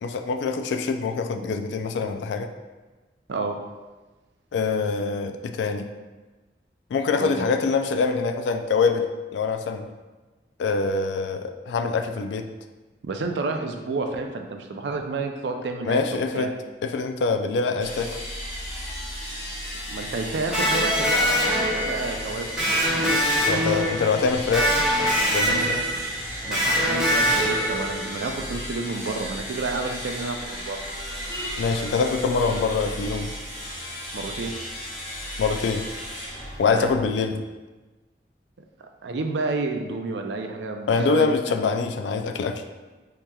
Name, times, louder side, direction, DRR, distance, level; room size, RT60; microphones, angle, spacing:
voice 1, 0.0-2.5 4.5-5.9 6.9-9.9 10.6-12.5 15.8-16.5 16.8-18.2 23.5-24.7 25.3-25.9 31.6-33.3 35.4-35.9 36.6-37.4 40.9-42.6, left 4 dB, 75° left, 6 dB, 0.3 m, -24 dB
voice 2, 13.0-16.5 19.9-22.9 26.5-30.8 34.1-34.5 36.7-36.9 39.0-41.7, right 3 dB, 70° right, 4 dB, 0.4 m, -30 dB
sound 1, 17.8-37.3, equal, 35° left, 1.1 m, -35 dB
Electric guitar, 20.5-28.2, equal, 5° right, 0.9 m, -23 dB
4.7 x 2.8 x 2.3 m, 1.2 s
head